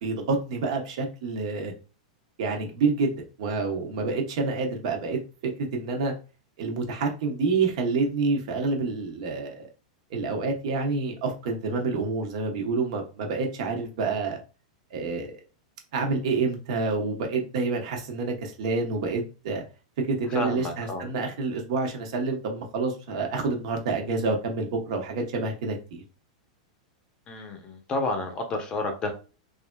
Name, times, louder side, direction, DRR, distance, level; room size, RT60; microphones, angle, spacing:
voice 1, 0.0-1.7 2.4-5.2 5.7-6.1 6.6-9.7 10.1-14.4 14.9-15.4 15.9-19.6 20.1-26.0, right 4 dB, 60° right, 0.9 m, -28 dB
voice 2, 20.3-21.1 27.3-29.1, left 2 dB, 25° left, 0.6 m, -30 dB
3.3 x 2.5 x 2.2 m
supercardioid pair, 150°, 4 cm